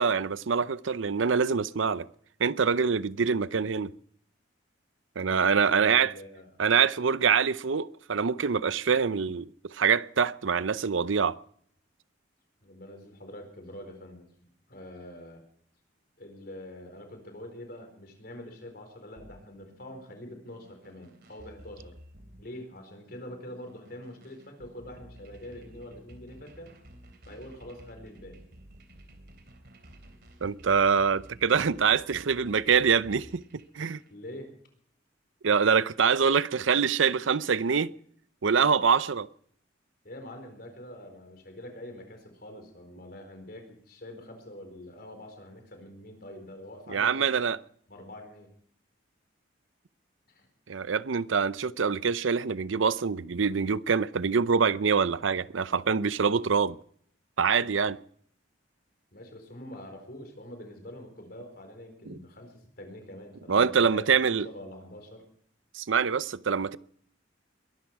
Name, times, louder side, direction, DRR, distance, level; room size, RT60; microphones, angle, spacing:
voice 1, 0.0-2.1 2.4-3.9 5.2-6.1 6.6-11.4 30.4-34.0 35.4-37.9 38.4-39.3 46.9-47.6 50.7-56.8 57.4-58.0 62.1-62.2 63.5-64.5 65.7-66.8, right 6 dB, 90° right, 0.6 m, -25 dB
voice 2, 5.5-6.5 12.6-14.3 14.7-15.4 16.2-21.9 22.4-26.7 27.3-28.4 33.8-34.5 40.0-47.5 47.9-48.5 50.3-50.5 59.1-65.2, left 1 dB, 55° left, 4.4 m, -45 dB
sound 1, 19.2-34.1, right 1 dB, 55° right, 3.2 m, -53 dB
22.0 x 13.5 x 4.8 m
head